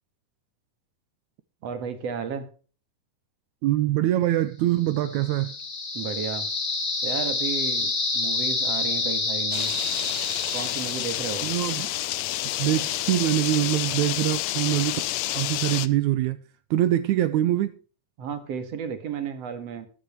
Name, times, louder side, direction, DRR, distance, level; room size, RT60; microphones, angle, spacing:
voice 1, 1.6-2.5 5.9-6.5 7.0-9.7 10.5-11.5 18.2-19.9, right 7 dB, 55° right, 2.7 m, -33 dB
voice 2, 3.6-5.5 11.4-11.9 12.6-15.0 15.3-16.4 16.7-17.7, right 13 dB, 75° right, 1.9 m, -24 dB
sound 1, 4.9-11.8, left 3 dB, 25° left, 2.2 m, -28 dB
sound 2, 9.5-15.9, left 15 dB, 80° left, 1.6 m, -29 dB
14.0 x 11.0 x 3.1 m
omnidirectional pair, 3.7 m